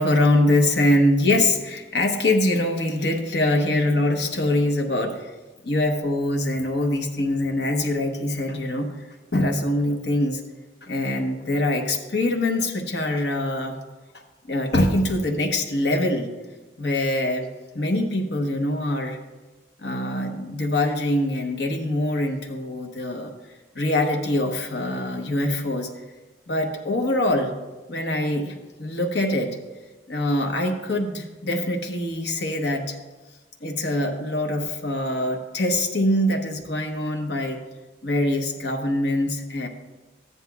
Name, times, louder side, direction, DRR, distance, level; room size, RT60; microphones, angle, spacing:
voice 1, 0.0-5.3 5.6-10.4 10.8-13.8 14.5-16.3 16.8-17.5 17.7-19.2 19.8-23.3 23.7-25.9 26.5-27.5 27.9-29.6 30.1-33.0 33.6-37.6 38.0-39.7, left 1 dB, 65° left, 3 dB, 1.0 m, -23 dB
14.0 x 9.6 x 2.4 m, 1.2 s
head